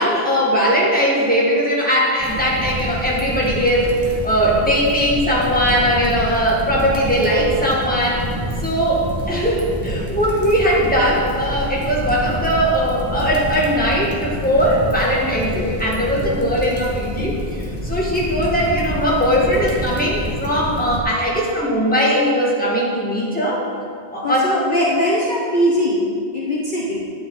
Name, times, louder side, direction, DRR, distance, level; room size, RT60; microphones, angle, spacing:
voice 1, 0.0-8.2 8.6-23.6 24.1-24.4, equal, 10° left, -5 dB, 2.0 m, -19 dB
sound 1, 2.2-21.0, equal, 15° right, 1.4 m, -27 dB
voice 2, 24.2-26.1 26.3-27.0, equal, 50° left, -4 dB, 1.3 m, -20 dB
11.5 x 9.0 x 3.9 m, 2.3 s
omnidirectional pair, 1.1 m